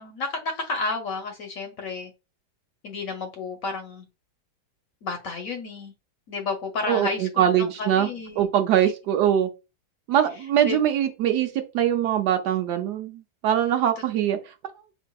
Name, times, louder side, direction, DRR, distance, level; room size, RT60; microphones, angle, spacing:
voice 1, 0.0-2.1 2.8-4.0 5.0-5.9 6.3-7.5 7.8-8.5 8.8-8.9 10.6-10.8, left 3 dB, 65° left, 0.9 m, -31 dB
voice 2, 6.9-8.1 8.4-9.5 10.1-14.4, right 10 dB, 75° right, 1.2 m, -22 dB
4.9 x 2.6 x 2.2 m
omnidirectional pair, 1.9 m